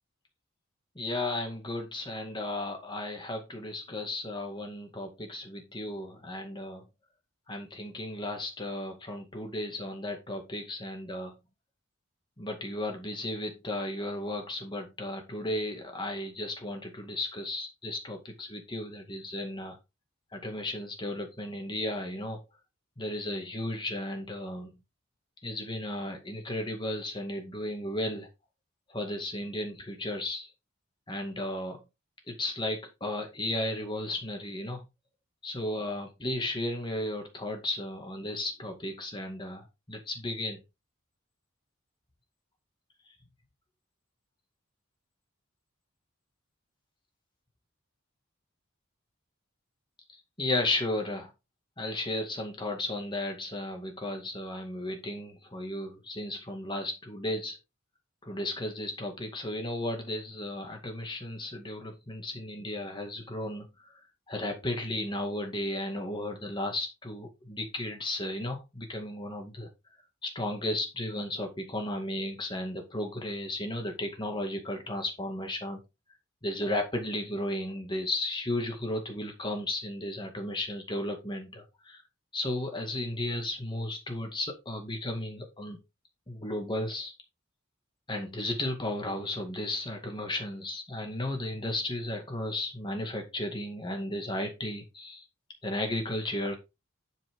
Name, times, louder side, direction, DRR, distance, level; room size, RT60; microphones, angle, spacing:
voice 1, 1.0-6.8 7.5-11.4 12.4-19.8 20.3-22.4 23.0-24.7 25.4-28.3 28.9-30.5 31.1-31.8 32.3-34.8 35.4-40.6 50.1-51.3 51.8-57.6 58.2-63.9 64.3-69.7 70.2-75.8 76.4-82.0 82.3-85.8 86.3-87.1 88.1-95.3 95.6-96.6, left 1 dB, 20° left, 4 dB, 2.0 m, -34 dB
11.5 x 5.9 x 3.7 m, 0.24 s
head